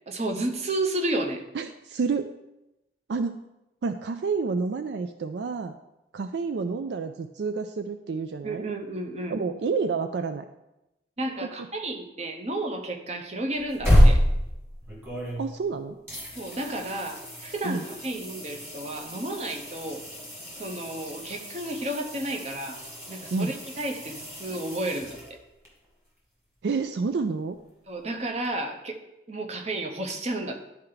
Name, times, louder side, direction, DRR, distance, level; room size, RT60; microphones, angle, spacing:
voice 1, 0.1-1.4 8.4-9.4 11.2-14.2 16.4-20.0 20.5-22.8 23.1-25.4 27.9-29.0 29.3-30.6, right 1 dB, 35° right, 4 dB, 0.8 m, -32 dB
voice 2, 1.5-2.3 3.1-3.4 3.8-5.7 6.1-8.7 9.3-10.5 11.4-11.5 15.4-16.0 17.6-17.8 23.3-23.5 26.6-27.6, right 4 dB, 70° right, 8 dB, 0.4 m, -29 dB
sound 1, 13.5-15.7 16.1-25.7 28.4-28.5, equal, 15° right, 1.9 m, -28 dB
11.5 x 4.3 x 3.9 m, 0.92 s
head